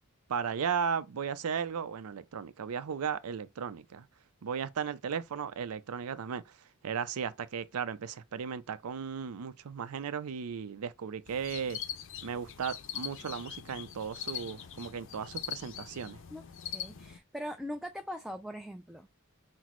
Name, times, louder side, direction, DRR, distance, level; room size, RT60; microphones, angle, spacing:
voice 1, 0.3-4.1 4.4-6.5 6.8-11.8 12.2-16.2, right 7 dB, 85° right, 0.5 m, -36 dB
sound 1, 11.3-17.2, left 9 dB, 60° left, 0.5 m, -42 dB
voice 2, 16.3-19.1, equal, ahead, 0.3 m, -41 dB
5.8 x 2.0 x 3.0 m
head